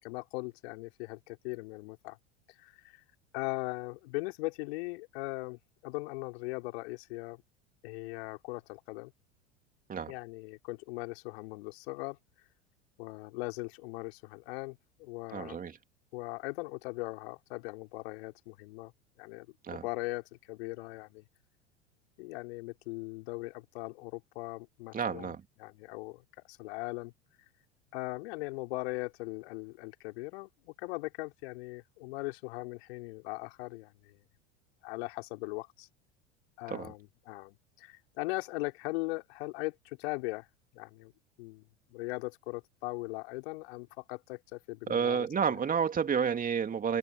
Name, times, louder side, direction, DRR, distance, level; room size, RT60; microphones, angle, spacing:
voice 1, 0.0-2.2 2.6-3.0 3.3-7.4 7.8-9.1 10.0-12.2 13.0-15.6 16.1-18.9 19.2-21.2 22.2-25.3 25.6-27.1 27.9-34.2 34.8-35.9 36.6-40.5 40.7-41.1 41.4-41.6 41.9-45.6, left 24 dB, 60° left, 4.4 m, -39 dB
voice 2, 15.3-15.8 19.6-19.8 24.9-25.4 36.7-36.9 44.9-47.0, right 7 dB, 25° right, 2.8 m, -30 dB
hypercardioid pair, 85°, 34 cm